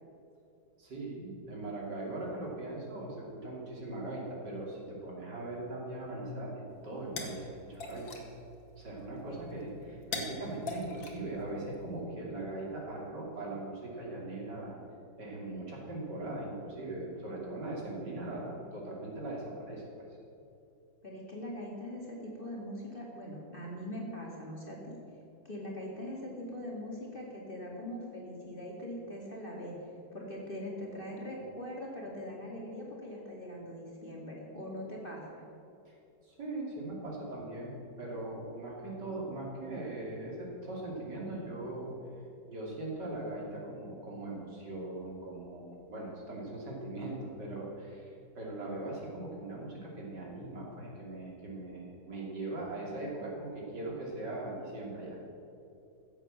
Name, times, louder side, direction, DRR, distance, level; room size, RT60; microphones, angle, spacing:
voice 1, 0.8-8.4 8.8-14.8 15.2-19.8 35.9-36.0 36.2-41.9 42.5-55.2, right 2 dB, 60° right, -3 dB, 3.4 m, -40 dB
sound 1, 6.7-12.0, left 2 dB, 80° left, 2.6 m, -43 dB
voice 2, 21.0-25.0 25.4-29.8 30.1-35.4, left 1 dB, 30° left, -2 dB, 2.3 m, -42 dB
15.0 x 7.9 x 7.6 m, 2.7 s
omnidirectional pair, 2.1 m